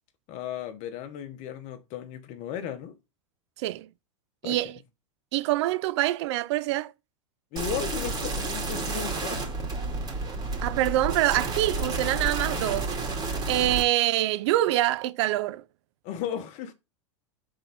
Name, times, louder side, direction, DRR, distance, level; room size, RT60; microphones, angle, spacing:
voice 1, 0.3-3.0 4.4-4.6 7.5-9.5 16.0-16.7, left 9 dB, 50° left, 1.2 m, -35 dB
voice 2, 4.4-4.8 5.3-6.9 10.6-12.9 13.5-15.6, right 15 dB, 60° right, 0.5 m, -25 dB
sound 1, 7.6-13.8, right 3 dB, 25° right, 2.5 m, -31 dB
5.7 x 3.8 x 5.2 m
hypercardioid pair, 95°, 16 cm